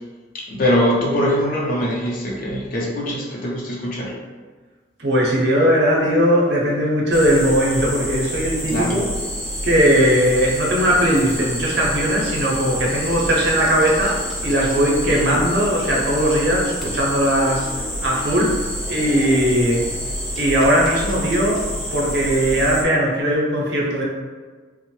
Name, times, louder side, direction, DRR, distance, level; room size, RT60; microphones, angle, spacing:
voice 1, 0.3-4.1 8.7-9.0 15.1-15.4, equal, 50° left, -3 dB, 0.5 m, -22 dB
voice 2, 5.0-9.1 9.6-17.7 18.0-19.9 20.3-24.0, equal, 65° right, -2 dB, 0.6 m, -19 dB
sound 1, 7.1-22.8, equal, ahead, 0.6 m, -28 dB
3.0 x 2.0 x 3.0 m, 1.4 s
head